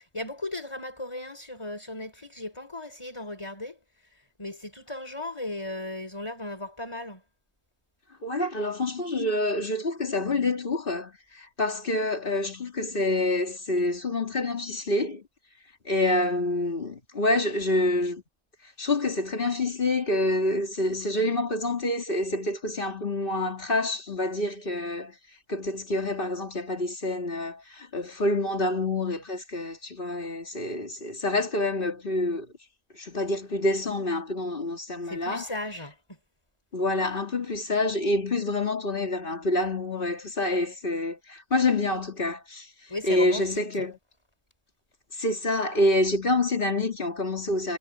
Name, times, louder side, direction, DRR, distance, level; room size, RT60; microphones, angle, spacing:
voice 1, 0.1-3.8 4.4-7.2 35.0-36.2 42.9-43.6, left 1 dB, 20° left, 4.1 m, -36 dB
voice 2, 8.2-15.2 15.8-18.2 18.8-25.2 25.5-32.5 32.9-35.5 36.7-42.7 43.0-44.0 45.1-47.8, left 2 dB, 40° left, 2.7 m, -27 dB
omnidirectional pair, 1.4 m